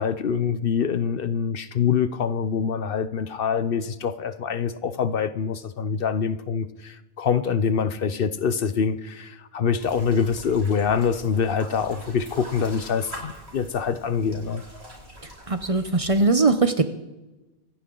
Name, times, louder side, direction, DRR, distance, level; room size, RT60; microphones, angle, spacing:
voice 1, 0.0-14.6, left 6 dB, 60° left, 0.9 m, -25 dB
sound 1, 9.8-16.3, equal, 75° right, 5.2 m, -43 dB
voice 2, 15.5-16.8, right 3 dB, 35° right, 0.8 m, -20 dB
25.5 x 10.5 x 3.9 m
omnidirectional pair, 1.1 m